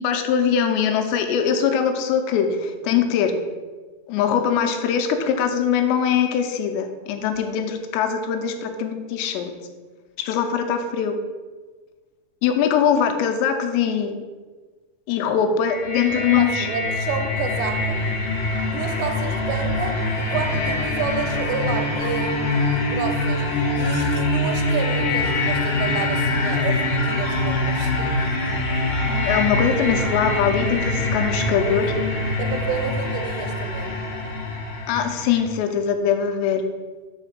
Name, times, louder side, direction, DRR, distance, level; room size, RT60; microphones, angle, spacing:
voice 1, 0.0-3.3 4.1-9.5 10.2-11.2 12.4-14.2 15.1-16.7 29.1-31.9 34.9-36.6, left 7 dB, 85° left, 6 dB, 2.9 m, -22 dB
sound 1, 15.6-35.4, left 2 dB, 50° left, 1.8 m, -24 dB
voice 2, 16.1-18.1 18.7-23.5 23.7-28.2 31.6-34.0, right 6 dB, 90° right, 6 dB, 2.8 m, -30 dB
sound 2, 16.7-35.4, left 3 dB, 65° left, 2.4 m, -33 dB
5.4 x 4.9 x 5.9 m, 1.4 s
omnidirectional pair, 4.9 m